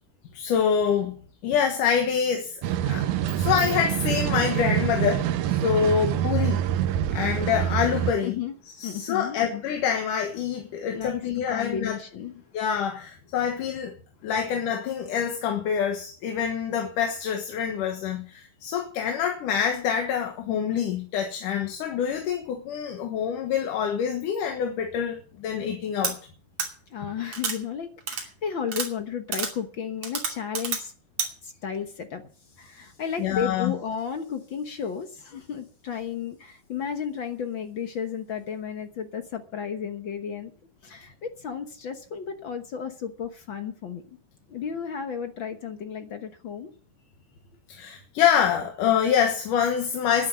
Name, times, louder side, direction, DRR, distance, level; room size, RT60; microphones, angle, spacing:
voice 1, 0.3-1.1 1.4-2.6 2.9-3.1 3.4-6.7 7.1-8.3 8.8-12.0 12.5-13.9 14.2-26.2 33.2-33.7 47.7-50.3, left 8 dB, 80° left, 3.0 m, -26 dB
sound 1, 2.6-8.1, right 11 dB, 75° right, 2.1 m, -26 dB
voice 2, 8.2-8.6 8.8-9.4 10.9-12.3 26.9-30.9 31.4-32.2 32.6-40.5 40.8-44.2 44.5-46.7, left 7 dB, 60° left, 1.2 m, -33 dB
sound 2, 26.0-26.1 26.6-26.7 27.3-27.6 28.1-28.2 28.7-28.9 29.3-29.5 30.0-30.8 31.2-31.3, right 5 dB, 50° right, 3.6 m, -28 dB
11.0 x 10.5 x 7.5 m
omnidirectional pair, 3.7 m